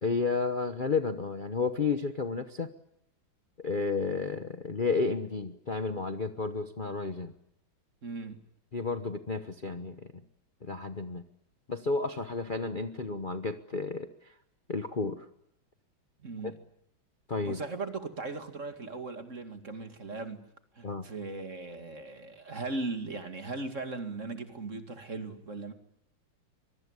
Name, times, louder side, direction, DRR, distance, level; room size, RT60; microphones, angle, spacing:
voice 1, 0.0-2.7 3.6-7.3 8.7-10.1 10.6-11.2 11.7-14.3 14.7-15.3 17.3-17.6 20.8-21.1, left 4 dB, 30° left, 1.0 m, -32 dB
voice 2, 8.0-8.4 16.2-16.6 17.5-20.5 20.7-25.7, right 3 dB, 40° right, 2.4 m, -38 dB
24.5 x 23.0 x 9.7 m
omnidirectional pair, 2.2 m